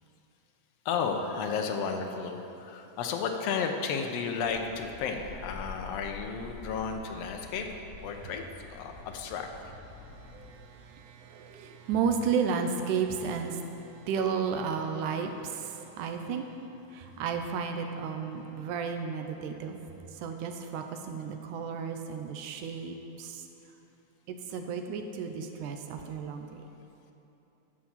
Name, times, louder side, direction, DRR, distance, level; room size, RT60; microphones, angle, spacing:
voice 1, 0.8-8.4 8.7-9.7, left 5 dB, 70° left, 4 dB, 1.7 m, -33 dB
sound 1, 4.4-10.5, left 3 dB, 15° left, 1.0 m, -47 dB
voice 2, 10.0-16.5 16.9-19.8 20.1-23.4 24.3-26.7, right 6 dB, 85° right, 5 dB, 2.2 m, -33 dB
11.5 x 6.2 x 7.3 m, 3.0 s
omnidirectional pair, 3.6 m